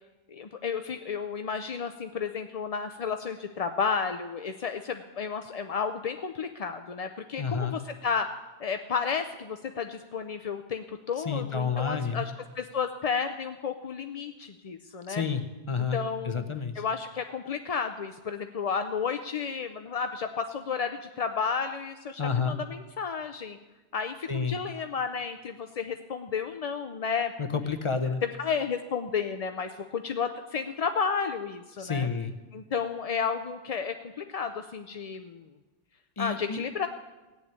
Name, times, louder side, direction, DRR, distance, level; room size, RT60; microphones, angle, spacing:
voice 1, 0.3-8.3 8.6-15.2 15.9-16.5 16.7-23.6 23.9-27.3 28.2-32.1 32.5-35.5 36.2-36.9, left 6 dB, 45° left, 7 dB, 0.5 m, -32 dB
voice 2, 7.4-7.8 11.2-12.2 15.1-16.0 16.2-16.8 22.2-22.6 24.3-24.6 27.4-28.2 31.8-32.3 36.2-36.6, left 5 dB, 30° left, 6 dB, 0.9 m, -30 dB
16.5 x 7.1 x 9.6 m, 1.2 s
omnidirectional pair, 1.2 m